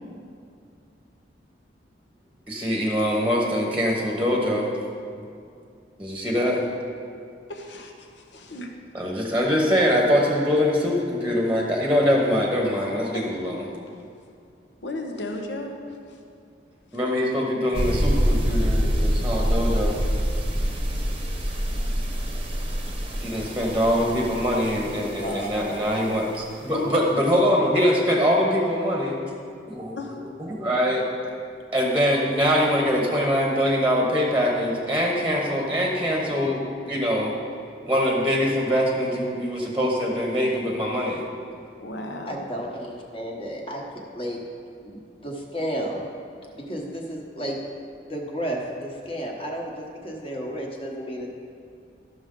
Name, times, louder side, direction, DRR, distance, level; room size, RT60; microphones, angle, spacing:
voice 1, 2.5-4.7 6.0-6.6 8.9-13.6 16.9-20.0 21.0-21.1 23.2-29.2 29.7-30.0 30.4-31.0 31.7-37.3 37.9-41.2, equal, 10° right, -1 dB, 1.0 m, -23 dB
voice 2, 7.5-8.7 13.1-13.2 13.9-14.0 14.8-16.2 26.7-27.0 27.3-27.4 30.0-30.2 41.8-42.5, left 2 dB, 85° left, 3 dB, 1.0 m, -35 dB
sound 1, 17.7-26.2, equal, 30° right, 0.8 m, -26 dB
voice 3, 25.2-25.8 42.3-43.8 44.1-44.4 44.8-46.0 46.6-47.6 48.1-51.3, right 1 dB, 30° left, -1 dB, 1.2 m, -32 dB
13.5 x 6.2 x 3.8 m, 2.4 s
head